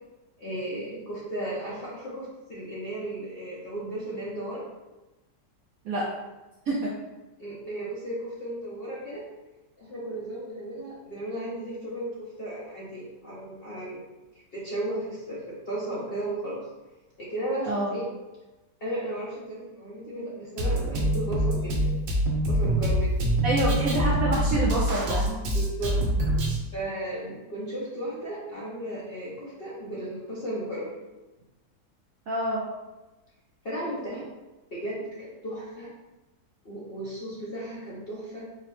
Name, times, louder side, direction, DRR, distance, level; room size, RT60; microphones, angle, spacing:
voice 1, 0.4-4.6 7.4-9.2 9.8-16.7 17.2-18.1 18.8-21.9 22.4-23.2 23.6-23.9 25.5-26.0 26.7-31.0 33.6-34.3 34.7-35.9 36.6-38.4, right 1 dB, 60° left, -7 dB, 0.6 m, -35 dB
Drum kit, 20.6-26.6, equal, 90° right, 1.4 m, -25 dB
voice 2, 23.4-25.3 32.3-32.6, right 2 dB, 65° right, -5 dB, 0.9 m, -27 dB
4.8 x 2.1 x 3.1 m, 1.1 s
omnidirectional pair, 2.0 m